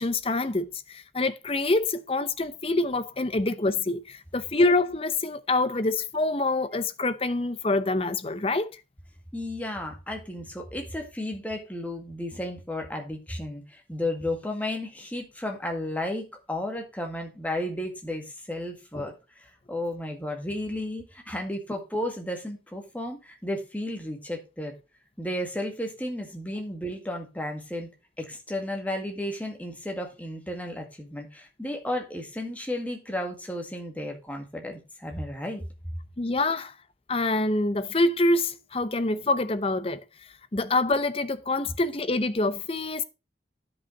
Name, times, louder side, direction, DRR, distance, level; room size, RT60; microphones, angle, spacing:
voice 1, 0.0-8.7 18.9-19.1 36.2-36.7 37.1-40.0 40.5-43.0, left 2 dB, 30° left, 0.6 m, -26 dB
voice 2, 9.3-24.7 25.2-35.6, left 1 dB, 10° left, 1.9 m, -33 dB
9.8 x 5.5 x 5.2 m
head